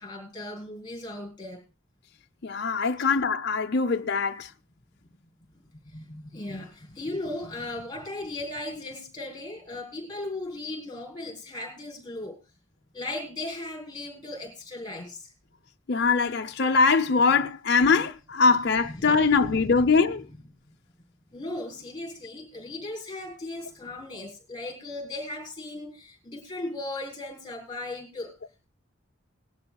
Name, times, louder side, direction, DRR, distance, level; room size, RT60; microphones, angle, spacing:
voice 1, 0.0-1.6 3.0-3.1 5.8-12.4 12.9-15.3 18.9-19.8 21.3-28.3, left 2 dB, 20° left, 4.0 m, -37 dB
voice 2, 2.4-4.5 15.9-20.2, left 4 dB, 55° left, 0.7 m, -22 dB
19.5 x 11.5 x 2.3 m
head